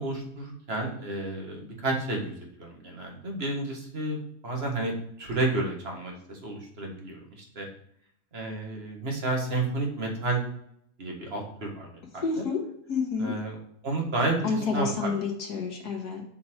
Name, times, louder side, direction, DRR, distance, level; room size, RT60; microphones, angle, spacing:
voice 1, 0.0-7.7 8.3-10.4 11.0-12.4 13.2-13.6 13.8-15.1, right 2 dB, 40° right, 1 dB, 1.7 m, -31 dB
voice 2, 12.2-12.6 12.9-13.3 14.4-16.2, left 4 dB, 75° left, 1 dB, 2.1 m, -29 dB
7.5 x 4.4 x 4.4 m, 0.70 s
omnidirectional pair, 1.7 m